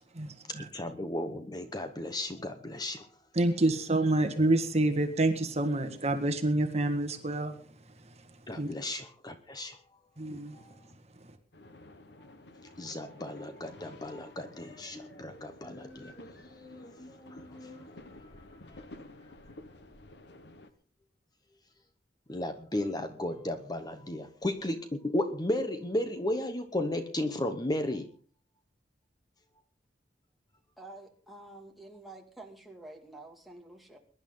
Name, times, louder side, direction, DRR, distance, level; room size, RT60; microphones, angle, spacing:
voice 1, 0.1-0.7 3.3-8.7 10.2-11.4, right 2 dB, 35° right, 1.6 m, -29 dB
voice 2, 0.7-3.1 8.5-9.8 10.5-10.8 12.8-17.9 18.7-18.8 22.3-28.1, left 1 dB, 20° left, 1.0 m, -35 dB
sound 1, 11.5-20.7, left 2 dB, 70° left, 1.3 m, -52 dB
voice 3, 30.8-34.0, right 2 dB, ahead, 2.4 m, -49 dB
22.0 x 11.0 x 3.9 m
head